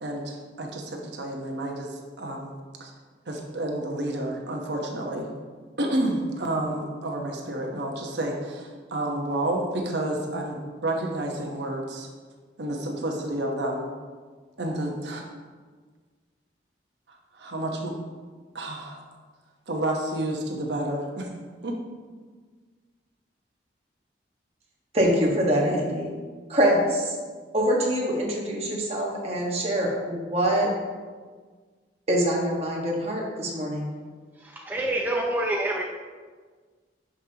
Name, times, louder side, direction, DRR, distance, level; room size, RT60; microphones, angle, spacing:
voice 1, 0.0-2.5 2.8-2.9 3.3-5.3 5.8-12.1 12.6-13.9 14.6-15.2 17.1-17.9 18.5-19.0 19.7-21.3 21.6-21.8, right 1 dB, 70° right, 1 dB, 1.1 m, -30 dB
voice 2, 24.9-26.1 26.5-27.2 27.5-30.7 32.1-33.9, equal, 35° right, -2 dB, 1.4 m, -24 dB
voice 3, 34.4-35.8, right 1 dB, 10° right, -1 dB, 0.4 m, -27 dB
11.0 x 5.4 x 2.9 m, 1.5 s
head